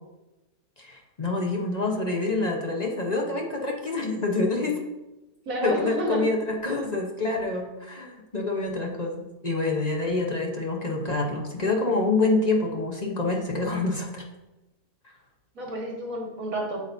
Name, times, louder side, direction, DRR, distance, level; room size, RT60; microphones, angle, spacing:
voice 1, 0.8-4.8 5.6-14.2, left 3 dB, 30° left, 0 dB, 0.9 m, -27 dB
voice 2, 5.5-6.3 15.6-16.8, right 1 dB, 65° right, -1 dB, 2.0 m, -29 dB
8.3 x 7.4 x 2.7 m, 1.0 s
omnidirectional pair, 1.6 m